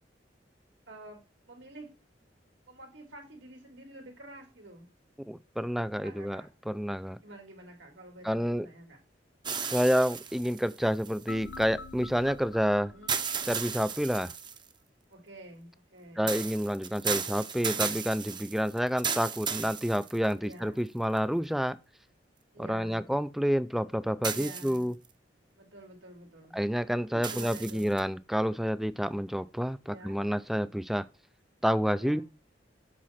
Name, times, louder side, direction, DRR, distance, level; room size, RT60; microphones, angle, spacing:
voice 1, 0.9-1.9 2.7-4.9 5.9-6.5 7.2-9.0 12.8-13.3 15.1-16.3 20.4-20.8 22.5-23.1 24.3-24.9 25.6-26.6 27.1-28.0 29.8-30.2 31.9-32.2, right 1 dB, 85° right, 2.4 m, -49 dB
voice 2, 5.3-6.4 6.7-7.2 8.2-8.7 9.7-12.9 13.4-14.3 16.2-21.8 22.6-24.9 26.5-31.0 31.6-32.2, equal, ahead, 0.3 m, -29 dB
sound 1, 9.4-11.6 13.1-14.7 16.3-20.5 21.2-21.3 24.2-25.1 27.2-28.0, right 6 dB, 25° right, 0.7 m, -35 dB
sound 2, 11.3-14.3, left 3 dB, 75° left, 0.5 m, -47 dB
7.6 x 4.2 x 5.6 m
head